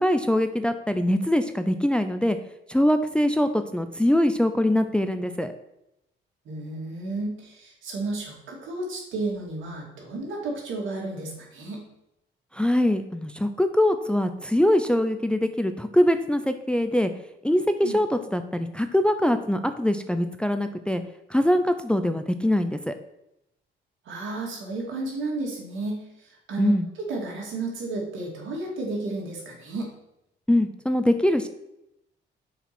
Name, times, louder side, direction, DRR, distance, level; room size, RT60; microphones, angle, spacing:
voice 1, 0.0-2.4 2.7-5.5 12.5-17.1 17.4-21.0 21.3-22.9 26.6-26.9 30.5-31.5, left 1 dB, 5° left, 8 dB, 0.5 m, -23 dB
voice 2, 6.4-11.8 17.8-18.0 24.0-29.9, right 2 dB, 75° right, -2 dB, 2.7 m, -32 dB
6.7 x 4.8 x 6.1 m, 0.86 s
cardioid pair, 90°, 20 cm